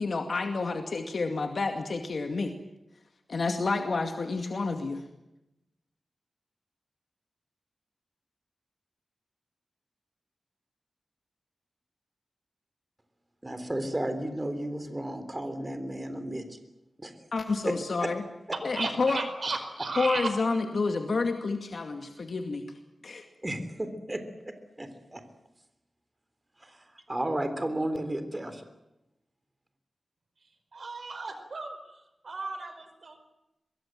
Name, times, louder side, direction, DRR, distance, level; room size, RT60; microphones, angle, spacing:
voice 1, 0.0-2.5 3.3-5.0 17.3-18.2 18.6-19.2 20.0-22.7 23.0-23.3, left 3 dB, 60° left, 5 dB, 2.2 m, -29 dB
voice 2, 13.4-16.6 17.0-17.3 17.7-17.8 18.0-18.1 23.4-25.2 26.6-28.6, right 1 dB, 20° right, 9 dB, 3.6 m, -33 dB
voice 3, 18.7-20.3 30.7-33.3, right 3 dB, 60° right, 8 dB, 4.8 m, -35 dB
23.5 x 23.0 x 7.8 m, 0.91 s
wide cardioid pair, 100°, 0 cm